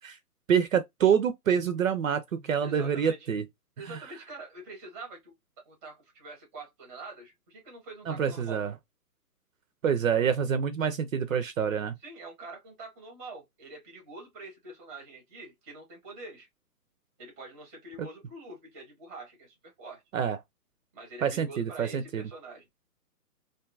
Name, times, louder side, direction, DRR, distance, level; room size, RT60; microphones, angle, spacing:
voice 1, 0.5-3.4 8.1-8.7 9.8-11.9 18.0-18.1 20.1-20.4 21.2-22.2, right 7 dB, 55° right, 0.5 m, -26 dB
voice 2, 2.6-3.3 3.8-5.3 5.6-8.6 12.0-16.5 17.2-20.0 20.9-22.7, right 3 dB, 10° right, 0.6 m, -45 dB
2.6 x 2.3 x 2.3 m
hypercardioid pair, 150°, 48 cm